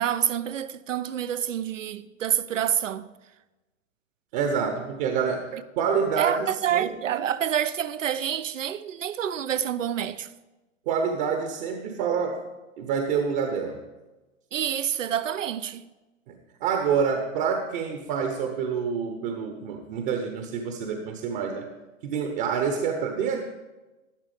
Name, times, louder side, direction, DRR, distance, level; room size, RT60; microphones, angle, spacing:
voice 1, 0.0-3.0 5.5-5.6 6.2-10.3 14.5-15.9, right 10 dB, 65° right, 0.7 m, -27 dB
voice 2, 4.3-7.3 10.9-12.5 12.8-13.8 16.3-16.4 16.6-21.7 22.0-23.4, right 6 dB, 40° right, 1.1 m, -27 dB
12.0 x 11.5 x 3.5 m
figure-of-eight pair, 105°, 40 cm